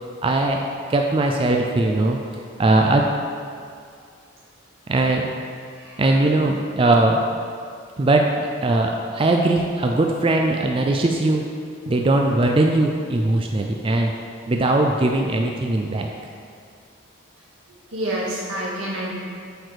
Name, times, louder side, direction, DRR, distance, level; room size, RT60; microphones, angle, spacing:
voice 1, 0.2-0.6 0.9-3.0 4.9-5.3 6.0-7.2 8.0-11.5 11.9-14.1 14.5-16.1, right 2 dB, 25° right, 2 dB, 0.4 m, -20 dB
voice 2, 17.9-19.1, right 1 dB, 85° right, -5 dB, 1.9 m, -28 dB
7.8 x 4.7 x 4.8 m, 2.3 s
head